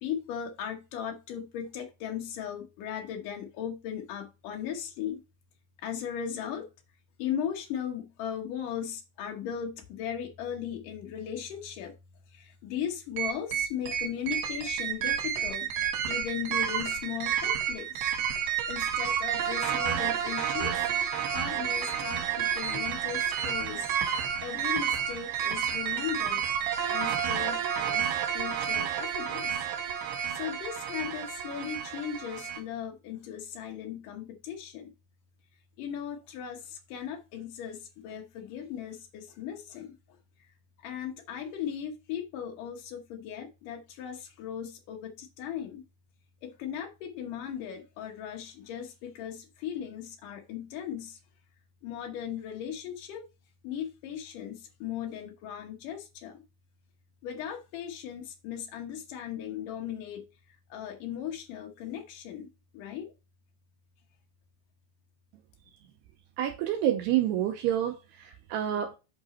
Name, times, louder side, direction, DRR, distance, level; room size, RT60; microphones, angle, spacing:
voice 1, 0.0-5.2 5.8-6.7 7.2-11.9 12.3-15.7 16.1-17.9 18.7-20.8 21.3-23.9 24.4-26.4 26.9-29.6 30.3-34.9 35.8-40.0 40.8-45.8 46.4-51.2 51.8-53.2 53.6-56.4 57.2-60.2 60.7-63.1, left 9 dB, 85° left, 1.8 m, -37 dB
sound 1, 13.2-32.6, right 8 dB, 70° right, 3.2 m, -30 dB
voice 2, 66.4-69.0, right 11 dB, 90° right, 2.4 m, -28 dB
8.7 x 4.9 x 4.2 m
omnidirectional pair, 5.6 m